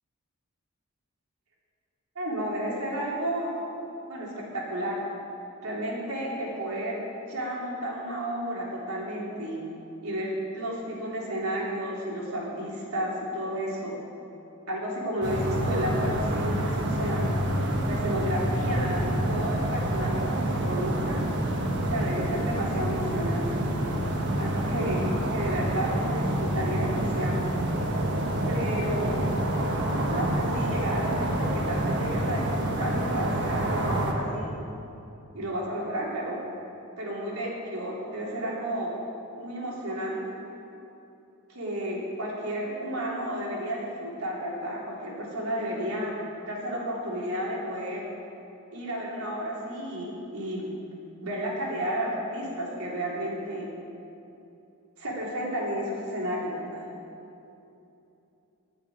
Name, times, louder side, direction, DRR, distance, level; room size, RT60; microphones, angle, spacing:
voice 1, 2.1-3.6 4.1-5.0 5.6-7.0 7.3-9.6 10.0-13.9 14.7-17.3 17.9-21.2 21.8-23.7 24.4-27.4 28.5-29.2 29.9-34.6 35.3-36.4 37.0-39.0 39.4-40.3 41.5-46.1 46.5-48.0 48.7-50.7 51.2-53.7 55.0-56.9, equal, 85° right, -4 dB, 3.2 m, -32 dB
sound 1, 15.2-34.1, right 1 dB, 55° right, 1.3 m, -27 dB
9.7 x 7.4 x 9.3 m, 2.8 s
head